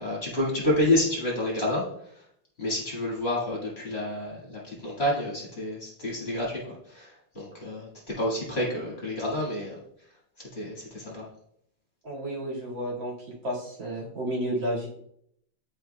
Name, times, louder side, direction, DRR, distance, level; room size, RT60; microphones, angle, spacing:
voice 1, 0.0-2.2 2.6-9.8 10.5-11.3, left 1 dB, 35° left, -5 dB, 1.9 m, -29 dB
voice 2, 12.0-13.1 13.4-14.9, right 1 dB, 70° right, -5 dB, 2.8 m, -31 dB
10.5 x 4.6 x 2.2 m, 0.71 s
omnidirectional pair, 2.1 m